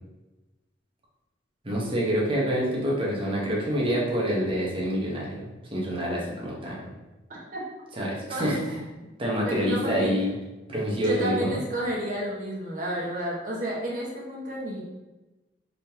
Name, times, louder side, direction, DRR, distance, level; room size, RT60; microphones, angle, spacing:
voice 1, 1.6-6.9 8.0-8.8 9.2-10.3 10.7-11.6, equal, 30° right, -4 dB, 1.1 m, -27 dB
voice 2, 9.4-10.1 11.0-14.8, right 1 dB, 45° right, -4 dB, 1.2 m, -31 dB
4.1 x 3.6 x 2.9 m, 1.1 s
head